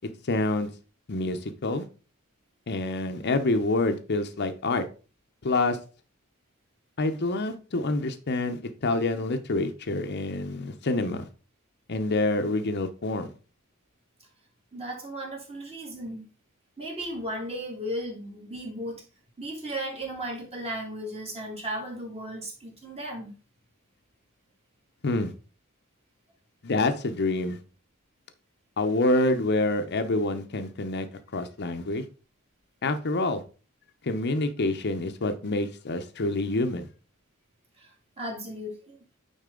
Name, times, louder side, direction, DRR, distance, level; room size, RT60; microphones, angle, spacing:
voice 1, 0.2-0.7 1.1-1.9 2.7-4.8 5.4-5.8 7.0-11.3 11.9-13.3 25.0-25.3 26.6-27.6 28.8-31.1 31.3-32.0 32.8-33.4 34.0-36.9, left 2 dB, 50° left, 8 dB, 0.8 m, -27 dB
voice 2, 14.7-16.3 16.8-19.0 19.4-23.4 37.8-39.0, right 1 dB, 30° right, -1 dB, 2.3 m, -35 dB
9.1 x 4.0 x 3.8 m, 0.36 s
head